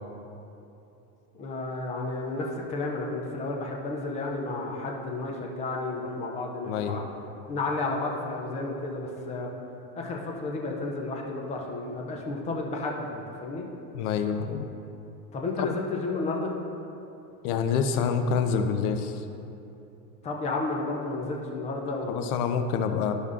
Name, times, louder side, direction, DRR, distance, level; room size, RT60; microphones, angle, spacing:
voice 1, 1.3-7.0 7.5-9.5 9.9-13.7 15.3-16.5 20.2-22.3, left 3 dB, 15° left, 0 dB, 0.3 m, -32 dB
voice 2, 6.7-7.0 13.9-14.7 15.6-15.7 17.4-19.2 22.1-23.1, left 6 dB, 65° left, 7 dB, 0.8 m, -27 dB
12.5 x 5.3 x 2.5 m, 2.8 s
supercardioid pair, 135°, 48 cm